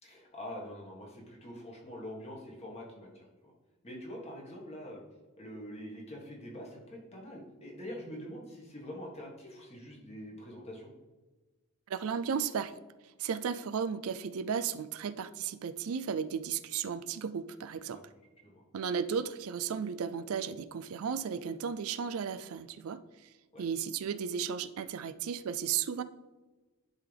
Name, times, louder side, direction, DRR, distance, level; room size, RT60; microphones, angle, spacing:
voice 1, 0.0-3.5 3.8-5.0 5.4-10.9 17.8-18.0 18.4-18.6 23.5-23.6, equal, 30° left, -2 dB, 1.6 m, -45 dB
voice 2, 11.9-12.8 13.2-18.0 18.7-23.0 23.6-26.0, right 7 dB, 65° right, 13 dB, 0.4 m, -34 dB
11.0 x 3.8 x 3.4 m, 1.2 s
head